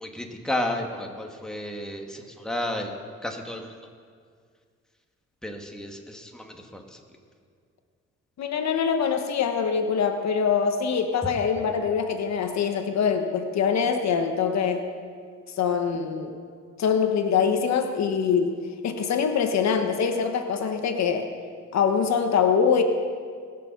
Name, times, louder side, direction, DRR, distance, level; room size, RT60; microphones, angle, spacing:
voice 1, 0.0-2.0 2.4-2.9 3.2-3.6 5.4-5.9 6.4-6.5, left 1 dB, ahead, 2 dB, 1.6 m, -31 dB
voice 2, 8.4-14.8 15.6-16.3 16.8-18.6 18.8-21.3 21.7-22.8, left 6 dB, 65° left, 6 dB, 1.1 m, -24 dB
20.5 x 6.8 x 5.9 m, 2.1 s
cardioid pair, 90°, 30 cm